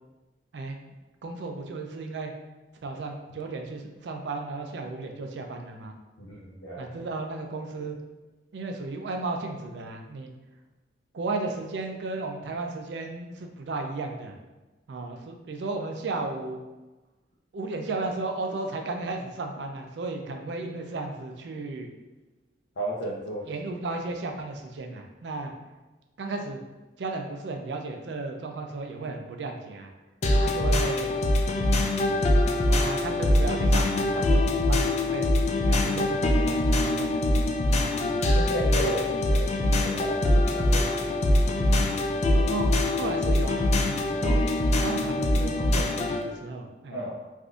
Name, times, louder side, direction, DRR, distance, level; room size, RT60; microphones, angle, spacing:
voice 1, 1.2-2.3 2.8-6.0 6.8-8.0 8.5-10.3 11.1-14.3 14.9-16.6 17.5-21.9 23.5-25.5 26.2-26.6 27.0-29.9 30.4-31.2 32.4-35.3 35.7-37.1 37.9-38.0 42.5-42.7 43.0-44.4 44.8-47.0, right 3 dB, 70° right, 4 dB, 0.4 m, -34 dB
voice 2, 6.2-7.0 22.8-23.5 38.3-41.2 41.9-42.5 46.9-47.2, right 1 dB, 90° left, -8 dB, 0.7 m, -34 dB
sound 1, 30.2-46.2, left 1 dB, 40° left, 0.3 m, -23 dB
3.4 x 2.5 x 2.4 m, 1.1 s
head